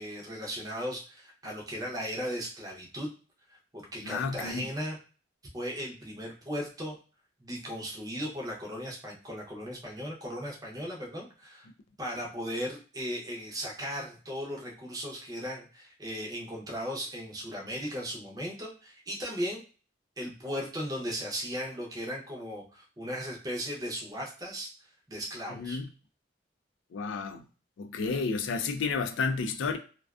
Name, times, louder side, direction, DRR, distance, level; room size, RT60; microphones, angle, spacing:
voice 1, 0.0-3.1 3.5-5.0 5.5-7.0 7.4-11.7 12.0-19.6 20.2-24.7 25.1-25.8, equal, 20° right, 0.6 m, -37 dB
voice 2, 4.0-4.7 25.6-25.9 26.9-27.4 27.8-29.8, left 4 dB, 85° left, 0.4 m, -31 dB
2.4 x 2.3 x 2.3 m
head